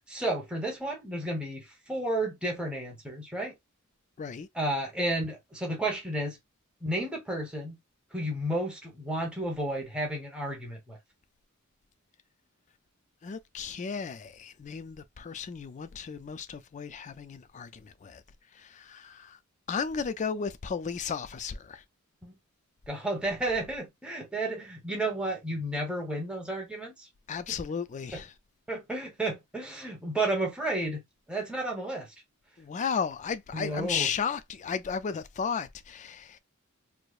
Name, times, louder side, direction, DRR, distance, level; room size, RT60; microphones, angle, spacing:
voice 1, 0.1-3.5 4.5-6.4 6.8-7.8 8.1-11.0 22.2-22.4 22.9-27.1 27.5-27.6 28.1-28.2 28.7-31.0 31.3-32.1 33.5-34.1, right 1 dB, 5° right, 1.0 m, -32 dB
voice 2, 4.2-4.5 13.2-18.2 18.6-19.4 19.7-21.8 27.3-28.3 32.6-36.4, left 6 dB, 35° left, 0.3 m, -34 dB
4.6 x 2.0 x 2.4 m
head